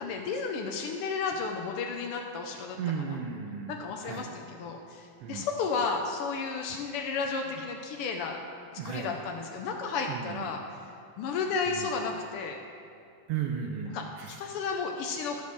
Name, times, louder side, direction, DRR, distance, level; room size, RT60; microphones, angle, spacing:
voice 1, 0.0-3.2 3.7-8.4 8.8-10.6 11.2-12.6 13.9-15.4, left 5 dB, 85° left, 2 dB, 1.2 m, -33 dB
voice 2, 2.8-3.8 4.0-4.3 5.2-5.5 8.8-9.1 10.1-10.6 11.7-11.9 13.3-14.3, right 7 dB, 80° right, 2 dB, 1.4 m, -35 dB
13.0 x 5.3 x 6.4 m, 2.5 s
omnidirectional pair, 3.3 m